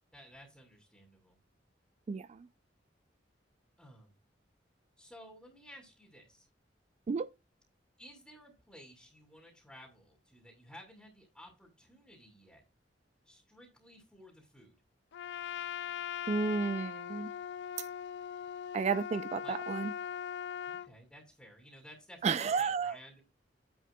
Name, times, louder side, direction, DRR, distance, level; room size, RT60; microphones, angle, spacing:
voice 1, 0.1-1.4 3.8-4.1 5.0-6.5 8.0-12.6 13.2-14.7 19.4-19.6 20.7-23.2, equal, 5° left, 2.5 m, -55 dB
voice 2, 2.1-2.5 7.1-7.3 16.3-17.3 17.8-17.9 18.7-19.9 22.2-23.0, right 5 dB, 40° right, 0.3 m, -32 dB
Trumpet, 15.1-20.9, left 9 dB, 65° left, 0.3 m, -40 dB
10.0 x 7.5 x 2.3 m
head